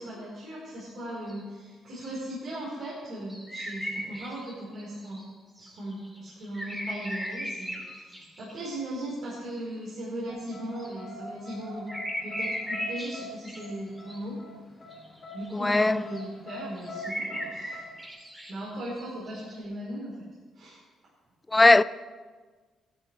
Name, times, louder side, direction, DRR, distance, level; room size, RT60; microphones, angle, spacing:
voice 1, 0.0-5.2 5.6-11.9 12.2-14.4 15.3-17.9 18.5-20.3 20.5-20.8, right 1 dB, 65° right, 4.3 m, -38 dB
sound 1, 1.3-1.4 1.9-2.1 2.7-2.8 3.3-5.3 5.6-8.7 10.8-10.9 11.9-13.7 14.0-14.2 14.9-15.0 15.3-15.6 16.0-16.2 16.8-18.5 19.0-19.1 19.4-19.5, equal, 10° right, 3.4 m, -37 dB
sound 2, 10.3-18.1, left 1 dB, 40° left, 4.2 m, -43 dB
voice 2, 15.5-16.0 21.5-21.8, left 2 dB, 15° left, 0.3 m, -19 dB
14.5 x 12.0 x 3.4 m
cardioid pair, 90°, 0 cm